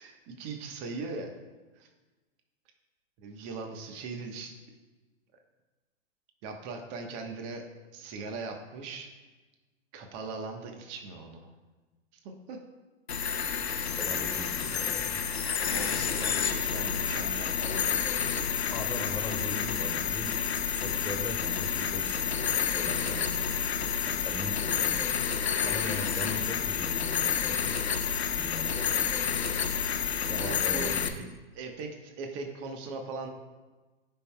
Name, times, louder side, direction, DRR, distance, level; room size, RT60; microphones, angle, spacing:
voice 1, 0.0-1.3 1.8-1.9 3.2-4.6 6.4-7.7 7.9-9.1 9.9-11.5 12.2-12.6 13.7-13.9 15.6-18.1 30.4-31.3 31.5-33.3, right 3 dB, 40° right, 4 dB, 1.2 m, -40 dB
sound 1, 13.1-31.1, left 7 dB, 90° left, 0.7 m, -29 dB
voice 2, 14.0-15.3 18.7-23.6 24.0-25.0 25.6-27.8 28.3-28.9 30.3-31.2, left 1 dB, 10° left, 1 dB, 2.1 m, -40 dB
17.0 x 5.6 x 2.3 m, 1.2 s
hypercardioid pair, 105°, 31 cm